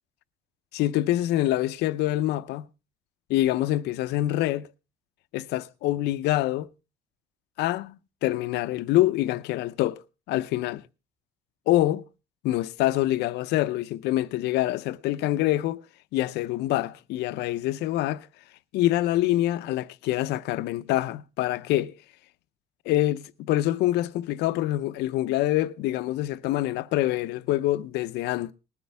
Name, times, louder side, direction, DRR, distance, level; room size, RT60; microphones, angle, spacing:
voice 1, 0.7-2.6 3.3-4.7 5.3-6.7 7.6-8.0 8.2-10.0 10.3-10.8 11.7-12.0 12.4-15.8 16.1-18.3 18.7-21.9 22.9-28.5, left 15 dB, 85° left, 0.6 m, -25 dB
20.0 x 9.6 x 3.4 m
cardioid pair, 110°, 17 cm